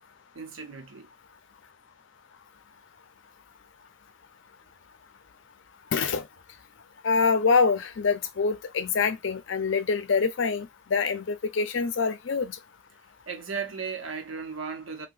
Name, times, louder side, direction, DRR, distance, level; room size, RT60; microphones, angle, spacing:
voice 1, 0.3-1.1 13.3-15.1, right 5 dB, 85° right, 0.8 m, -36 dB
voice 2, 5.9-6.2 7.0-12.6, left 5 dB, 70° left, 0.5 m, -25 dB
2.8 x 2.2 x 3.8 m
head